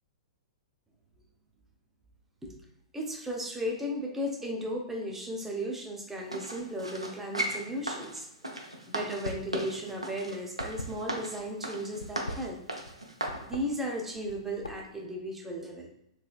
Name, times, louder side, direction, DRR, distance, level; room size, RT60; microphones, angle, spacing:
voice 1, 2.9-12.6 13.4-15.9, equal, 10° right, -1 dB, 0.7 m, -35 dB
sound 1, 6.3-13.4 14.0-14.1, right 1 dB, 90° right, 0.5 m, -37 dB
sound 2, 9.2-9.6 9.8-11.4 11.9-13.0 13.3-13.6 14.2-15.0, left 1 dB, 75° left, 0.3 m, -40 dB
3.1 x 3.0 x 2.3 m, 0.79 s
figure-of-eight pair, 105°, 3 cm